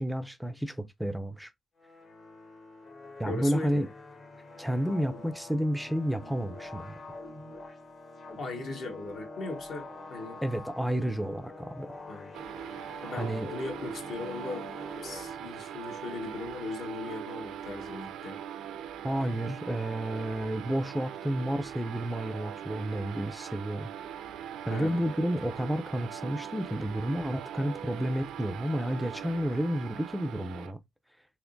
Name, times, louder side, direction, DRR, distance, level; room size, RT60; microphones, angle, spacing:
voice 1, 0.0-1.5 3.2-3.9 4.6-7.0 10.4-11.9 13.2-13.5 19.0-23.9 24.6-30.8, equal, ahead, 0.3 m, -31 dB
sound 1, 1.8-15.9, left 2 dB, 50° left, 1.2 m, -46 dB
voice 2, 3.2-3.9 8.4-10.4 12.1-12.3 13.0-14.7 15.0-18.4 24.7-25.0, left 3 dB, 70° left, 1.2 m, -38 dB
sound 2, 12.3-30.7, right 9 dB, 85° right, 0.4 m, -41 dB
3.5 x 2.9 x 2.5 m
cardioid pair, 90°, 0 cm